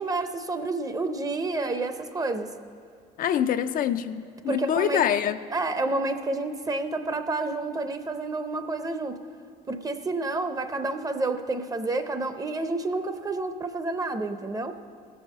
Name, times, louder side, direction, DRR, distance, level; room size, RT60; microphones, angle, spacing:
voice 1, 0.0-2.5 4.5-5.0 5.5-9.1 9.7-14.8, right 2 dB, 20° right, 9 dB, 0.7 m, -29 dB
voice 2, 3.2-5.4, left 9 dB, 55° left, 10 dB, 0.4 m, -25 dB
16.5 x 5.6 x 7.3 m, 2.2 s
cardioid pair, 110°, 17 cm